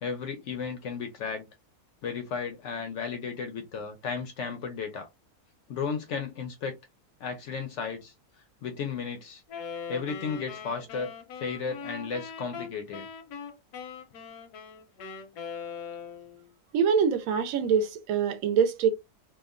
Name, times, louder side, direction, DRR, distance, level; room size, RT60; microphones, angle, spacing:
voice 1, 0.0-1.5 2.0-5.1 5.7-6.8 7.2-8.1 8.6-9.4 9.9-11.1 11.4-13.1, left 5 dB, 70° left, 0.7 m, -34 dB
Wind instrument woodwind instrument, 9.5-16.4, left 6 dB, 90° left, 1.1 m, -41 dB
voice 2, 16.7-18.9, right 6 dB, 70° right, 0.9 m, -24 dB
2.8 x 2.2 x 2.4 m
omnidirectional pair, 1.7 m